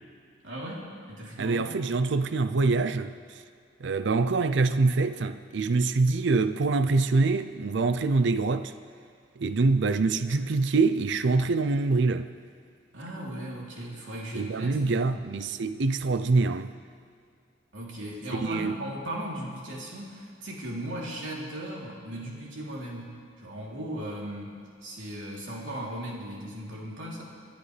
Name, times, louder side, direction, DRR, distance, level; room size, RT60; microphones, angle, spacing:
voice 1, 0.4-1.7 12.9-15.3 17.7-27.2, right 1 dB, 85° right, 3.3 m, -37 dB
voice 2, 1.4-3.1 3.8-8.7 9.4-12.3 14.3-16.7 18.3-18.8, right 3 dB, 65° right, 0.5 m, -25 dB
28.5 x 10.5 x 3.3 m
head